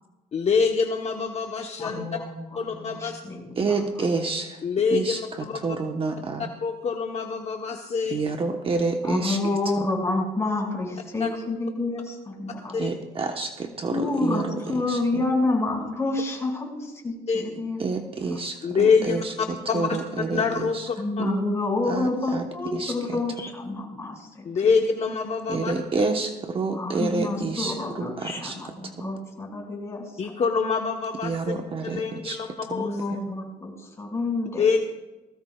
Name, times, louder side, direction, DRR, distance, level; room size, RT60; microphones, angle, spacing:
voice 1, 0.3-2.0 2.5-3.2 4.6-5.6 6.6-8.2 11.2-11.3 12.7-12.9 17.3-17.4 18.6-19.2 19.7-20.0 20.3-20.9 24.4-25.7 30.2-31.5 31.8-33.0 34.6-34.9, left 5 dB, 40° left, 3 dB, 1.1 m, -25 dB
voice 2, 1.8-3.7 9.0-12.8 13.9-17.8 19.0-19.2 21.0-24.5 26.7-30.2 32.6-34.6, left 2 dB, 15° left, -1 dB, 5.9 m, -29 dB
voice 3, 3.6-4.6 4.9-6.5 8.1-9.4 9.8-9.9 12.8-15.2 17.8-20.9 21.2-21.5 21.9-22.4 22.7-23.2 25.5-28.6 28.8-29.1 31.2-32.4 32.7-32.8, right 4 dB, 30° right, 4 dB, 1.1 m, -29 dB
19.5 x 17.0 x 2.4 m, 1.1 s
cardioid pair, 110°, 17 cm